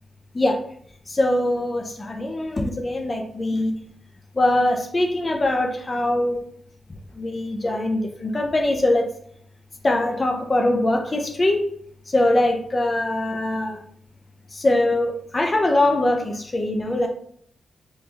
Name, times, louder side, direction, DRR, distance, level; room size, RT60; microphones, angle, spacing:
voice 1, 1.1-3.8 4.3-6.4 7.1-9.1 9.8-11.7 12.1-13.8 14.5-17.1, left 1 dB, 30° left, 3 dB, 0.5 m, -22 dB
3.3 x 3.0 x 2.8 m, 0.63 s
cardioid pair, 85°, 0 cm